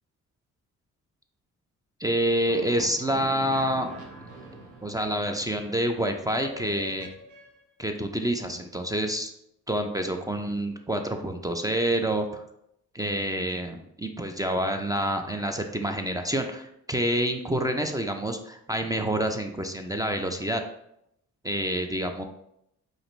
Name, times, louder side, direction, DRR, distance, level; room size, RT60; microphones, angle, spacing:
voice 1, 2.0-3.9 4.8-7.1 7.8-9.3 9.7-12.4 12.9-20.6 21.4-22.2, right 1 dB, 10° right, 5 dB, 0.4 m, -27 dB
sound 1, 2.5-7.6, right 1 dB, 80° right, 0.9 m, -43 dB
4.9 x 2.6 x 3.1 m, 0.78 s
cardioid pair, 70°, 35 cm